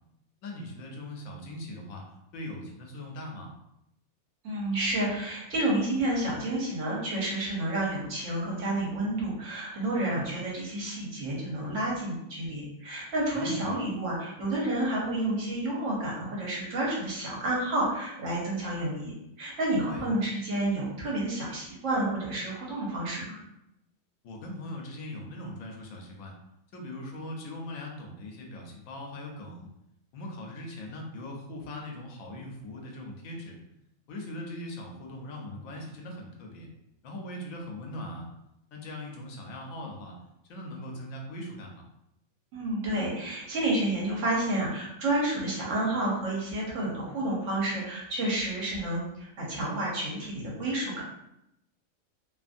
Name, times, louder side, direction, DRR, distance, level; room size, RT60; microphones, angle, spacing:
voice 1, 0.4-2.0 2.3-3.5 13.3-13.7 19.8-20.1 24.2-26.3 26.7-29.7 30.1-33.6 34.1-36.7 37.0-38.3 38.7-40.2 40.4-41.9, left 1 dB, 80° left, 1 dB, 1.0 m, -40 dB
voice 2, 4.4-23.4 42.5-51.0, right 1 dB, 65° right, -4 dB, 1.2 m, -30 dB
2.8 x 2.5 x 2.5 m, 0.83 s
omnidirectional pair, 1.4 m